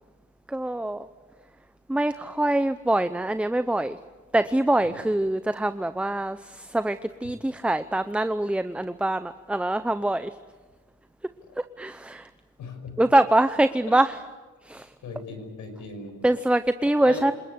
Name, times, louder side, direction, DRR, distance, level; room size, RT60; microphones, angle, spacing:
voice 1, 0.5-1.1 1.9-4.0 4.3-10.3 11.6-12.3 13.0-14.2 14.7-14.9 16.2-17.3, right 1 dB, 5° right, 12 dB, 0.7 m, -24 dB
voice 2, 12.6-13.0 15.0-16.3 17.0-17.2, left 3 dB, 75° left, 6 dB, 5.9 m, -38 dB
27.5 x 20.5 x 8.1 m, 1.2 s
cardioid pair, 90°, 30 cm